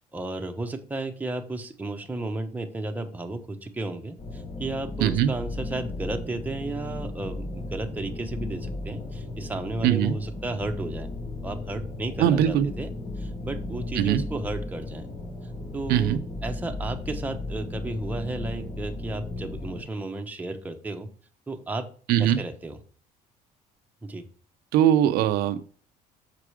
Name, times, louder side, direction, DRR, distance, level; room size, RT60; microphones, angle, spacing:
voice 1, 0.0-11.1 11.4-12.9 13.2-15.1 15.7-21.1 21.5-21.9 22.2-22.8 24.0-24.3, right 2 dB, 10° right, 4 dB, 0.9 m, -33 dB
sound 1, 4.2-19.8, left 2 dB, 35° left, 2.0 m, -35 dB
voice 2, 5.0-5.3 9.8-10.1 12.2-12.7 13.9-14.2 15.9-16.2 22.1-22.4 24.7-25.6, right 10 dB, 80° right, 10 dB, 0.6 m, -21 dB
6.7 x 4.8 x 4.8 m, 0.42 s
cardioid pair, 125°, 16 cm